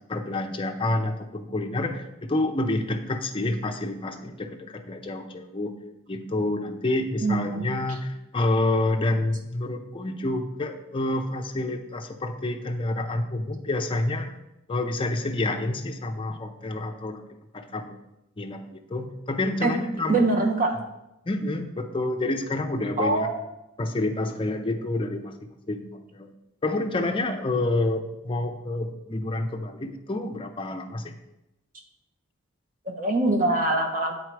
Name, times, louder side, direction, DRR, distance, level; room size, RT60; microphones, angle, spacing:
voice 1, 0.1-5.7 6.1-14.4 14.7-17.2 17.5-18.0 18.4-20.3 21.3-23.3 23.8-25.3 25.7-26.3 26.6-31.1, left 2 dB, 25° left, 4 dB, 0.5 m, -28 dB
voice 2, 7.2-7.8 19.6-19.7 20.1-20.7 23.0-23.4 32.9-34.1, right 2 dB, 40° right, 3 dB, 0.9 m, -23 dB
8.0 x 4.1 x 4.6 m, 0.93 s
head